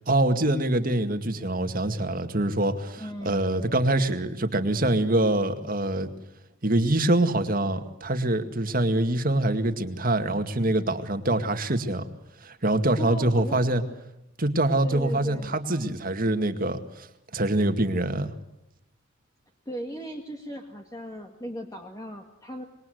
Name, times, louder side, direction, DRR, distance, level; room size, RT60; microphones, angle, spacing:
voice 1, 0.1-6.1 6.6-12.1 12.4-13.8 14.4-17.1 17.3-18.3, right 1 dB, 45° right, 8 dB, 2.1 m, -25 dB
voice 2, 3.0-3.5 13.0-13.6 14.8-15.5 19.7-22.6, equal, 20° left, 2 dB, 2.2 m, -37 dB
26.0 x 22.0 x 7.9 m, 0.87 s
head